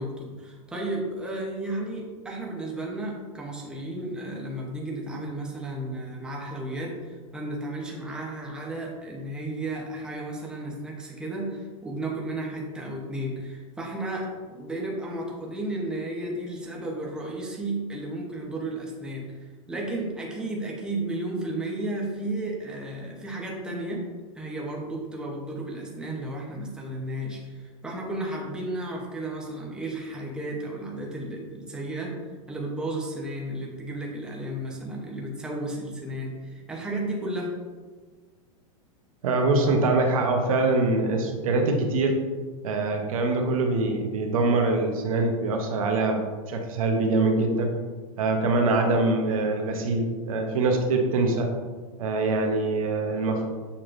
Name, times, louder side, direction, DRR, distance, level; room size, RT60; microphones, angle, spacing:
voice 1, 0.0-24.1 24.3-32.2 32.5-37.5, right 1 dB, 5° right, -3 dB, 0.7 m, -33 dB
voice 2, 39.2-42.2 42.6-47.7 48.2-51.5 52.0-53.5, right 3 dB, 80° right, 3 dB, 0.8 m, -24 dB
6.8 x 3.0 x 2.5 m, 1.4 s
supercardioid pair, 135°, 18 cm